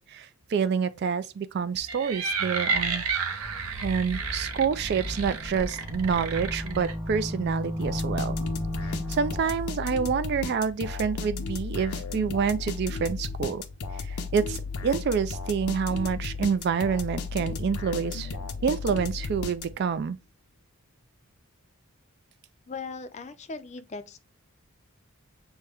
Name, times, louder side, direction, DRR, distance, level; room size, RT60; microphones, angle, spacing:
voice 1, 0.0-3.0 3.3-3.5 3.8-8.4 8.8-13.6 13.9-18.4 18.6-20.2, right 6 dB, 50° right, 0.3 m, -28 dB
sound 1, 1.8-6.9, right 4 dB, 75° right, 0.6 m, -31 dB
sound 2, 3.4-9.7, equal, 10° right, 0.9 m, -35 dB
sound 3, 7.8-20.0, left 4 dB, 85° left, 0.6 m, -34 dB
voice 2, 22.7-24.3, left 4 dB, 30° left, 0.4 m, -39 dB
6.2 x 2.2 x 3.4 m
head